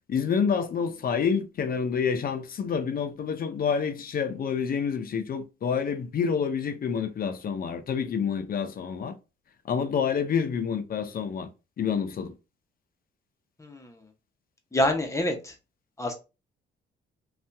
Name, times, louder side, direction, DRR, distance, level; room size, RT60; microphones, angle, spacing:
voice 1, 0.1-9.1 9.6-11.5 11.8-12.3, left 6 dB, 50° left, 0.6 m, -28 dB
voice 2, 13.6-13.9 14.7-15.5 16.0-16.1, left 1 dB, 15° left, 0.9 m, -27 dB
2.7 x 2.4 x 3.3 m
cardioid pair, 90°, 20 cm